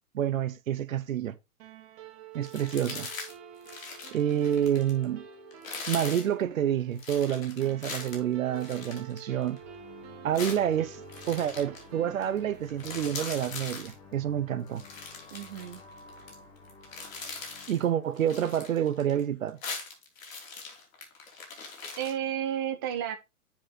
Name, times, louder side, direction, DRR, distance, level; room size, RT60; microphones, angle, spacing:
voice 1, 0.1-1.3 2.3-3.1 4.1-5.2 5.9-9.6 10.2-11.0 11.3-14.8 17.7-19.6, right 10 dB, 65° right, 0.9 m, -28 dB
sound 1, 1.6-14.3, right 9 dB, 40° right, 1.8 m, -49 dB
Bag of Chips, 2.4-3.3 3.6-5.0 5.5-6.3 7.0-9.6 10.3-11.8 12.2-12.4 12.6-13.9 14.7-16.3 16.7-17.8 18.2-19.2 19.5-22.1, left 4 dB, 60° left, 3.2 m, -41 dB
sound 2, 9.6-18.6, left 4 dB, 30° left, 1.8 m, -52 dB
voice 2, 15.3-15.8 22.0-23.2, right 10 dB, 20° right, 0.3 m, -32 dB
7.2 x 5.0 x 3.9 m
figure-of-eight pair, 110°, 43 cm